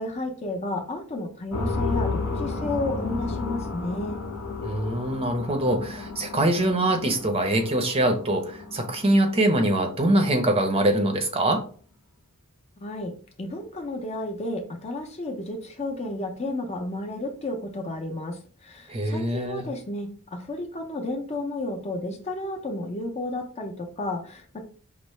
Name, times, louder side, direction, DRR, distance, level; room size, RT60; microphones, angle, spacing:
voice 1, 0.0-4.2 12.8-13.1 13.4-24.7, left 2 dB, 30° left, 3 dB, 0.6 m, -32 dB
sound 1, 1.5-10.2, left 3 dB, 65° left, 0.8 m, -33 dB
voice 2, 4.6-11.6 18.9-19.7, right 1 dB, 25° right, 5 dB, 0.6 m, -23 dB
5.4 x 2.1 x 3.1 m, 0.42 s
head